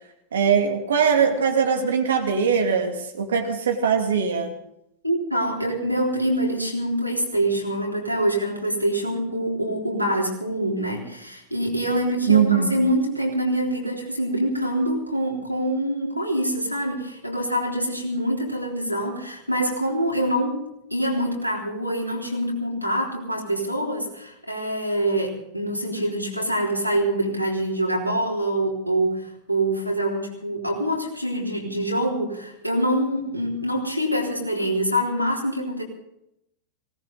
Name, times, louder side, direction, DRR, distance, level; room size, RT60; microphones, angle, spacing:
voice 1, 0.3-4.5 12.3-12.7, right 6 dB, 65° right, 4 dB, 2.4 m, -21 dB
voice 2, 5.0-35.8, right 1 dB, 90° left, -1 dB, 3.6 m, -25 dB
19.0 x 18.0 x 4.0 m, 0.80 s
figure-of-eight pair, 90°, 0 cm